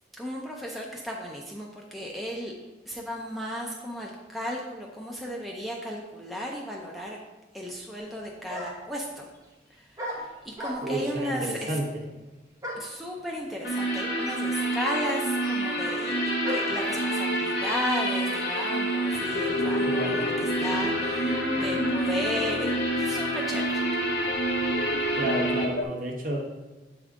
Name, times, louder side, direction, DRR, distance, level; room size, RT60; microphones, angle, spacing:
voice 1, 0.2-2.5 2.9-7.2 7.5-9.3 9.7-11.8 12.8-23.9, equal, ahead, -2 dB, 0.5 m, -35 dB
sound 1, 8.0-8.1 8.5-9.0 10.0-11.1 12.6-13.0 14.0-14.1 14.3-16.9, equal, 20° right, 0.9 m, -37 dB
voice 2, 10.8-12.0 19.9-20.2 25.1-26.4, right 1 dB, 45° right, -1 dB, 0.9 m, -31 dB
sound 2, 13.6-25.6, right 1 dB, 75° left, 1.4 m, -28 dB
sound 3, 19.1-25.8, left 2 dB, 55° left, 0.4 m, -33 dB
7.6 x 3.6 x 3.6 m, 1.2 s
head